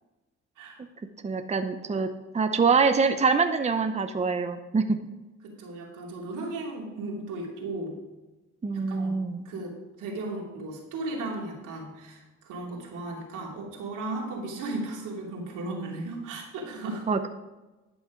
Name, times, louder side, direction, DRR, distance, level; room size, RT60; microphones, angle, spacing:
voice 1, 1.2-5.0 8.6-9.4 17.1-17.3, right 4 dB, 20° right, 7 dB, 0.7 m, -25 dB
voice 2, 5.4-7.9 8.7-9.1 9.4-9.7 10.0-17.1, right 2 dB, 90° right, -2 dB, 2.8 m, -35 dB
11.5 x 6.3 x 5.1 m, 1.1 s
cardioid pair, 90°, 30 cm